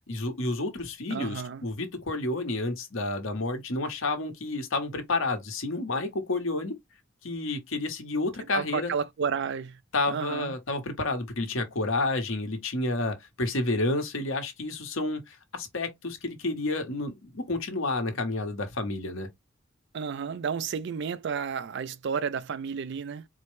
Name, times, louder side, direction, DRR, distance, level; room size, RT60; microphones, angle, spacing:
voice 1, 0.1-6.8 7.2-8.9 9.9-19.3, left 2 dB, 75° left, 1.1 m, -30 dB
voice 2, 1.1-1.6 8.5-9.8 10.1-10.5 19.9-23.3, right 6 dB, 60° right, 0.4 m, -31 dB
4.2 x 2.1 x 3.1 m
head